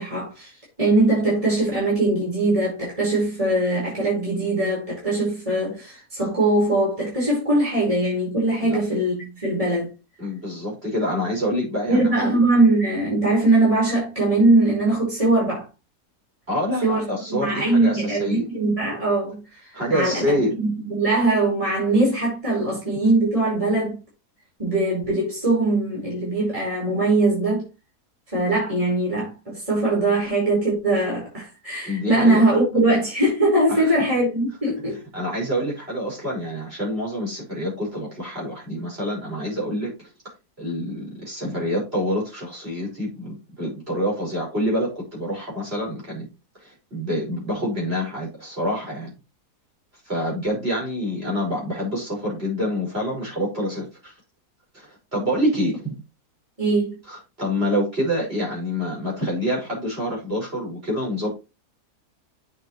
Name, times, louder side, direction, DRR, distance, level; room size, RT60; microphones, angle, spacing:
voice 1, 0.0-9.9 11.9-15.6 16.8-24.0 24.6-27.6 28.3-35.0 56.6-57.0, right 2 dB, 20° right, 5.1 m, -21 dB
voice 2, 10.2-12.4 16.5-18.5 19.7-20.5 31.8-32.4 33.7-33.9 35.1-40.1 40.6-46.3 46.6-49.1 50.1-54.1 54.7-55.9 57.1-61.3, equal, 35° right, 6.2 m, -27 dB
8.9 x 6.9 x 3.2 m
omnidirectional pair, 1.7 m